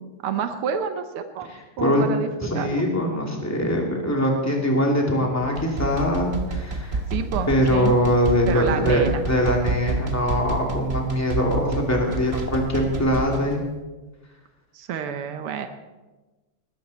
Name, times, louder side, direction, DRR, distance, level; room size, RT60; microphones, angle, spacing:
voice 1, 0.2-1.5 1.8-2.9 7.1-7.9 8.5-9.2 14.7-15.7, right 7 dB, 85° right, 8 dB, 1.8 m, -29 dB
voice 2, 2.4-7.0 7.5-13.6, equal, 5° left, -1 dB, 2.6 m, -22 dB
sound 1, 5.4-13.6, right 2 dB, 35° right, 1.1 m, -29 dB
20.0 x 13.5 x 4.2 m, 1.2 s
omnidirectional pair, 2.4 m